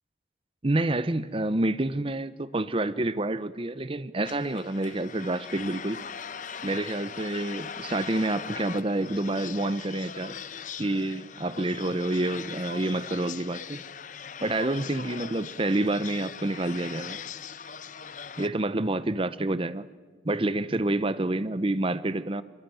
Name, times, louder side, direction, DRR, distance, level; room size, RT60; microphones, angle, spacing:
voice 1, 0.6-6.0 6.6-10.4 10.8-13.8 14.4-17.2 18.4-19.9 20.2-22.4, right 2 dB, 30° right, 14 dB, 0.8 m, -28 dB
sound 1, 4.2-18.5, left 7 dB, 40° left, 0.8 m, -40 dB
27.0 x 23.0 x 9.2 m, 1.4 s
head